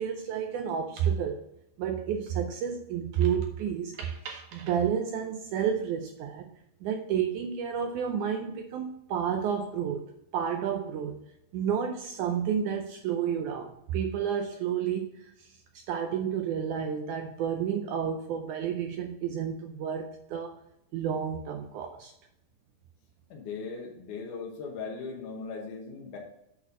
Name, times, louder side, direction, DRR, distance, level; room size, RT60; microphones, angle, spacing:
voice 1, 0.0-1.4 1.8-6.5 6.8-11.2 11.5-15.6 15.9-20.6 20.9-22.1, right 8 dB, 85° right, 4 dB, 1.7 m, -31 dB
voice 2, 23.3-26.2, left 4 dB, 65° left, -2 dB, 2.3 m, -38 dB
8.4 x 4.2 x 5.4 m, 0.79 s
omnidirectional pair, 4.3 m